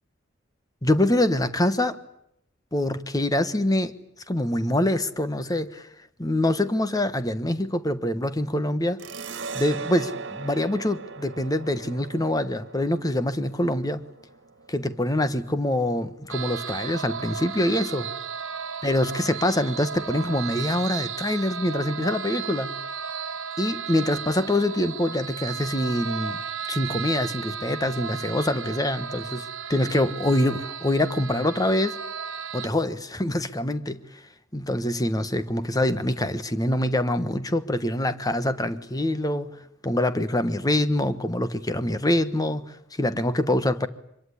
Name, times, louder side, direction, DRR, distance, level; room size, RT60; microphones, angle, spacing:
voice 1, 0.8-2.0 2.7-3.9 4.3-5.9 6.2-9.0 9.5-14.0 14.7-18.1 18.8-22.7 23.6-26.4 26.7-32.0 32.5-34.0 34.5-39.5 39.8-43.9, left 1 dB, 20° left, 1.3 m, -25 dB
sound 1, 9.0-16.2, right 5 dB, 65° right, 1.9 m, -39 dB
sound 2, 16.3-32.7, right 7 dB, 80° right, 1.6 m, -34 dB
25.0 x 23.0 x 9.9 m
head